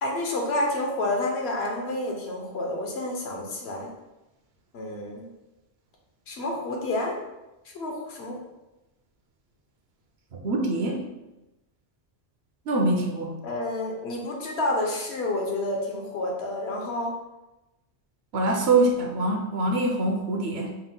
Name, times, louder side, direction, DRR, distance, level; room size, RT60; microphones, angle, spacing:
voice 1, 0.0-3.9 4.7-5.3 6.3-7.2 7.6-8.4 13.4-17.1, left 2 dB, 75° left, 0 dB, 1.0 m, -29 dB
voice 2, 10.4-11.0 12.7-13.4 18.3-20.7, right 2 dB, 70° right, 1 dB, 0.9 m, -24 dB
4.4 x 2.1 x 3.8 m, 0.99 s
omnidirectional pair, 1.1 m